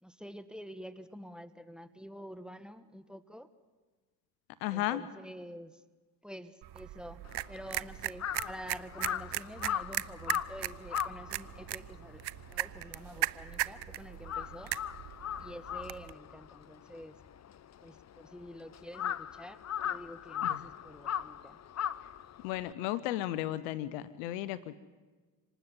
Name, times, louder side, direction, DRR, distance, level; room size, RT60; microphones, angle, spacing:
voice 1, 0.0-3.5 4.7-5.8 6.2-12.2 12.5-14.7 15.4-17.2 17.8-19.6 19.8-21.6, equal, ahead, 11 dB, 1.6 m, -48 dB
voice 2, 4.6-5.0 20.4-20.6 22.4-24.8, left 14 dB, 85° left, 17 dB, 0.9 m, -34 dB
sound 1, 6.6-16.1, right 16 dB, 60° right, 0.8 m, -38 dB
Crow, 7.2-13.8 14.1-22.7, left 9 dB, 35° left, 0.7 m, -38 dB
26.0 x 19.5 x 7.5 m, 1.3 s
hypercardioid pair, 55°, 46 cm